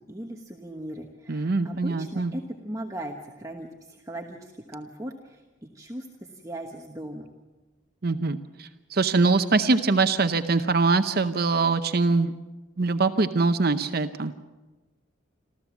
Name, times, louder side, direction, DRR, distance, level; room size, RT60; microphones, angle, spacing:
voice 1, 0.1-7.3, right 1 dB, 15° right, 1 dB, 1.1 m, -38 dB
voice 2, 1.3-2.3 8.0-12.3 12.8-14.3, right 3 dB, 50° right, 9 dB, 0.7 m, -23 dB
27.0 x 14.0 x 7.2 m, 1.2 s
head